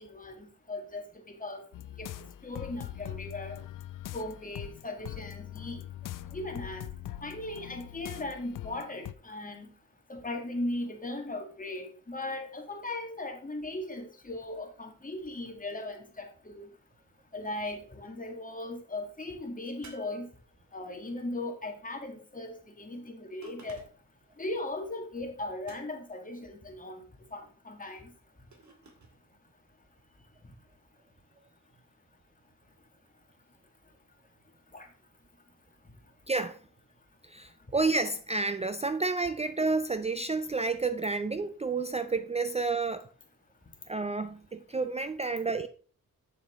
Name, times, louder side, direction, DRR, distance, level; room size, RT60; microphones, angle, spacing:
voice 1, 0.0-1.6 2.0-2.1 2.4-3.6 4.1-5.8 6.3-6.9 7.2-9.7 10.1-16.7 17.3-20.3 20.7-23.8 24.4-27.0 27.3-28.1 34.7-34.9, left 2 dB, 25° left, 1.8 m, -38 dB
sound 1, 1.7-9.1, left 13 dB, 75° left, 0.5 m, -42 dB
sound 2, 19.8-20.9 23.4-24.2 25.6-26.2 28.5-29.2, right 3 dB, 60° right, 2.2 m, -54 dB
voice 2, 36.3-36.6 37.2-43.1 43.9-45.7, right 3 dB, 20° right, 0.4 m, -30 dB
8.3 x 6.9 x 3.5 m
wide cardioid pair, 100°, 32 cm